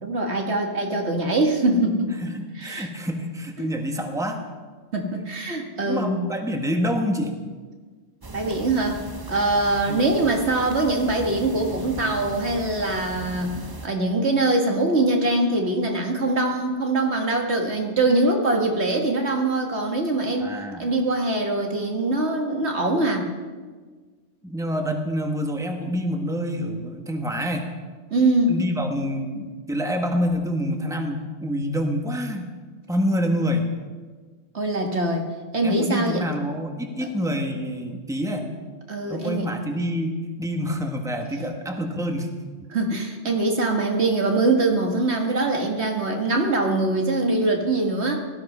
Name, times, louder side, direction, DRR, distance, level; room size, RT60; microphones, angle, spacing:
voice 1, 0.0-2.2 2.6-2.9 3.6-3.7 4.9-6.1 8.3-9.0 9.3-13.6 13.8-20.5 20.8-23.3 28.1-28.6 34.5-35.3 35.5-36.3 38.9-39.5 41.4-41.5 42.7-48.2, right 2 dB, 75° right, 2 dB, 2.1 m, -23 dB
voice 2, 2.2-4.4 5.8-7.3 9.8-10.0 20.4-20.9 24.4-27.7 28.5-32.5 32.9-33.8 35.6-38.5 39.1-42.3, equal, 5° right, 3 dB, 1.4 m, -27 dB
sound 1, 8.2-13.9, right 2 dB, 25° right, 0.7 m, -38 dB
17.5 x 13.0 x 5.5 m, 1.4 s
omnidirectional pair, 1.1 m